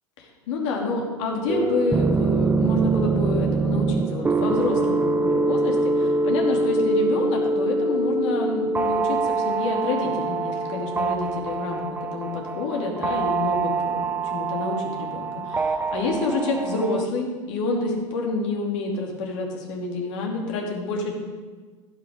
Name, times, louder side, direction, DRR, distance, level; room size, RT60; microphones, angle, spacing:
voice 1, 0.2-21.1, left 3 dB, 65° left, 0 dB, 2.6 m, -28 dB
sound 1, 1.5-17.0, right 3 dB, 10° right, 0.5 m, -24 dB
15.5 x 6.0 x 5.2 m, 1.4 s
hypercardioid pair, 90°, 17 cm